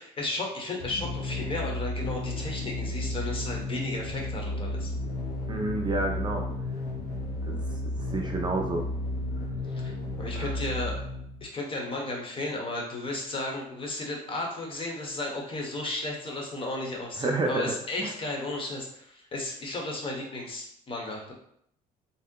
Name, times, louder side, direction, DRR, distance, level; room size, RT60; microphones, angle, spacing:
voice 1, 0.0-4.9 9.7-10.9 11.4-21.3, left 2 dB, 30° left, 0 dB, 0.8 m, -34 dB
sound 1, 0.8-11.5, left 1 dB, 60° left, 0.6 m, -33 dB
voice 2, 5.5-6.5 7.5-7.6 8.1-8.8 10.4-10.5 17.2-17.7 18.0-18.1, right 2 dB, 25° right, 1 dB, 0.4 m, -29 dB
2.7 x 2.0 x 3.7 m, 0.69 s
cardioid pair, 110°, 17 cm